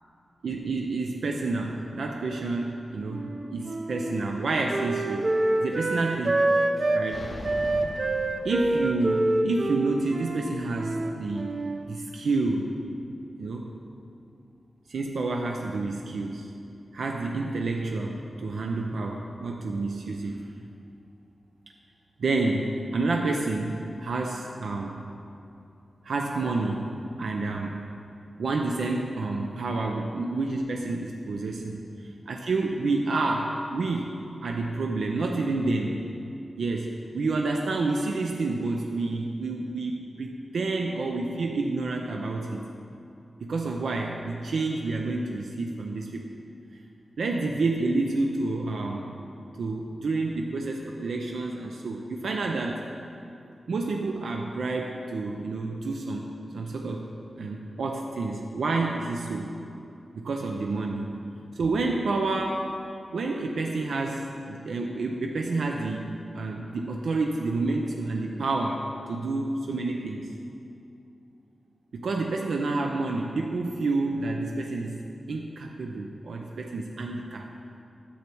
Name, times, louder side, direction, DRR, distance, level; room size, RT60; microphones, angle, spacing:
voice 1, 0.4-3.3 3.5-5.3 5.6-6.4 6.9-7.3 8.4-11.5 11.9-12.7 13.4-13.7 14.9-16.5 16.9-20.4 22.2-25.0 26.0-26.9 27.2-27.8 28.4-31.8 32.3-34.1 34.4-36.0 36.6-42.6 43.4-46.3 47.2-49.1 49.6-52.8 53.7-57.1 57.4-59.5 60.1-61.1 61.5-62.7 63.1-70.3 71.9-75.0 75.3-77.5, right 3 dB, 85° right, 1 dB, 0.6 m, -29 dB
Wind instrument woodwind instrument, 3.1-7.1 7.4-11.9, right 2 dB, 35° right, 0.5 m, -27 dB
sound 1, 7.1-9.3, left 2 dB, 40° left, 0.5 m, -40 dB
10.0 x 6.6 x 4.6 m, 2.7 s
wide cardioid pair, 165°, 0 cm